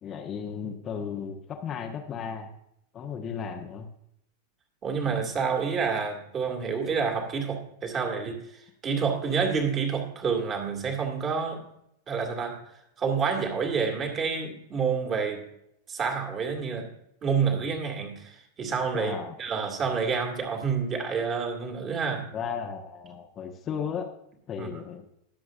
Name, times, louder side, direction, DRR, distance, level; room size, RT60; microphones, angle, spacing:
voice 1, 0.0-2.5 2.9-3.9 18.9-19.4 22.3-24.1 24.5-25.1, left 7 dB, 30° left, 3 dB, 1.2 m, -35 dB
voice 2, 4.8-11.7 12.1-12.6 13.0-15.4 15.9-16.9 17.2-22.3 24.6-24.7, right 5 dB, 25° right, 3 dB, 2.4 m, -28 dB
20.5 x 7.6 x 2.5 m, 0.76 s
figure-of-eight pair, 90°, 0 cm